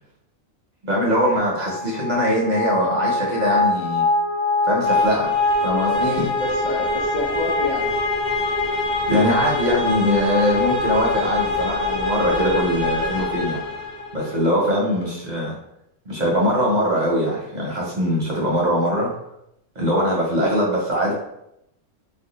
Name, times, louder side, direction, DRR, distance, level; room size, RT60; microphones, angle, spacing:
voice 1, 0.8-4.0 4.6-6.3 9.1-13.6 14.1-15.6 16.1-19.1 19.8-21.1, equal, 50° right, -4 dB, 0.5 m, -22 dB
sound 1, 1.5-14.3, left 2 dB, 35° left, 0.9 m, -23 dB
voice 2, 6.0-7.9, left 2 dB, 80° left, -4 dB, 0.3 m, -28 dB
2.5 x 2.2 x 3.9 m, 0.81 s
omnidirectional pair, 1.4 m